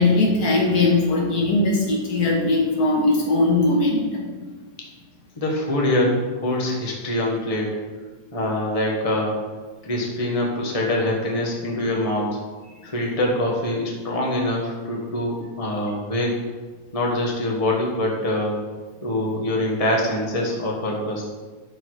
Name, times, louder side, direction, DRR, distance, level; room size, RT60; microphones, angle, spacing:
voice 1, 0.0-4.3, left 2 dB, 75° left, -3 dB, 2.2 m, -20 dB
voice 2, 5.4-7.7 8.3-9.3 9.8-12.4 12.8-16.3 16.9-18.6 19.0-21.2, left 1 dB, 25° left, -1 dB, 1.4 m, -24 dB
12.0 x 4.4 x 4.8 m, 1.3 s
omnidirectional pair, 1.7 m